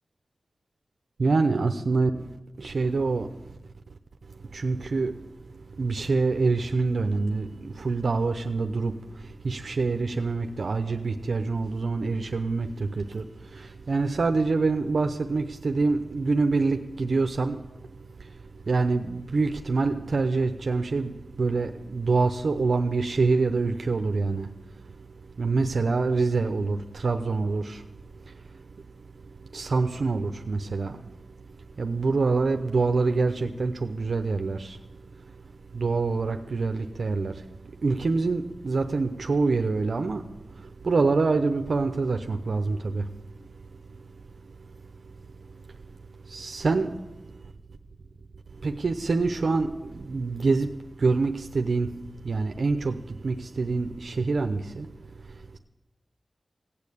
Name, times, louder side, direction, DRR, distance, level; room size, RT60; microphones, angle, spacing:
voice 1, 1.2-2.3 2.6-3.3 4.5-5.1 5.8-17.6 18.2-18.3 18.7-24.5 25.4-27.8 28.3-28.4 29.5-31.0 31.8-34.8 35.7-37.4 37.8-40.2 40.6-43.1 46.3-46.9 48.6-50.7 51.0-51.9 52.2-54.9, right 3 dB, 65° right, 0.8 m, -26 dB
17.0 x 8.7 x 8.5 m
wide cardioid pair, 90°, 0 cm